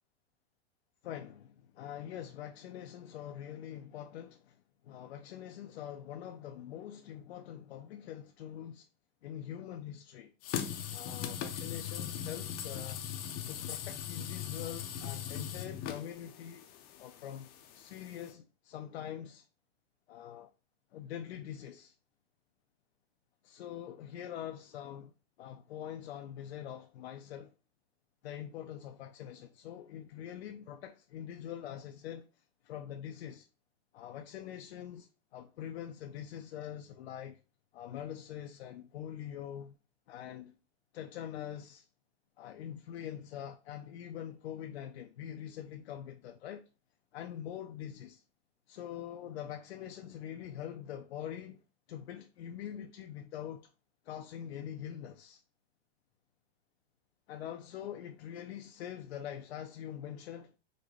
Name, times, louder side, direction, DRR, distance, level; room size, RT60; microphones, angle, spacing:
voice 1, 1.0-4.6 4.8-8.9 9.2-10.3 10.9-13.0 13.5-16.7 17.0-19.5 20.1-20.5 20.9-21.9 23.4-25.1 25.4-27.5 28.2-32.3 32.6-33.5 33.9-37.4 37.7-39.7 40.1-40.5 40.9-41.8 42.4-46.7 47.1-48.2 48.7-51.6 51.9-53.7 54.1-55.4 57.3-60.5, left 10 dB, 90° left, 0.5 m, -44 dB
sound 1, 10.4-18.3, left 9 dB, 30° left, 0.4 m, -40 dB
3.8 x 2.2 x 3.1 m
hypercardioid pair, 130°, 31 cm